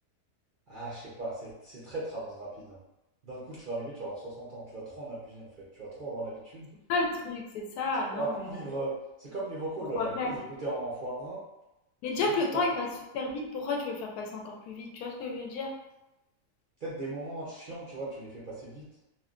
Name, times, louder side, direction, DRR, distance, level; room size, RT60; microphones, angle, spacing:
voice 1, 0.7-2.8 3.2-6.7 8.1-11.4 12.2-12.6 16.8-18.9, right 2 dB, 60° right, -8 dB, 0.5 m, -37 dB
voice 2, 6.9-8.6 9.9-10.3 12.0-12.9 13.1-15.7, left 3 dB, 80° left, 0 dB, 1.1 m, -31 dB
3.1 x 2.2 x 2.4 m, 0.93 s
omnidirectional pair, 1.6 m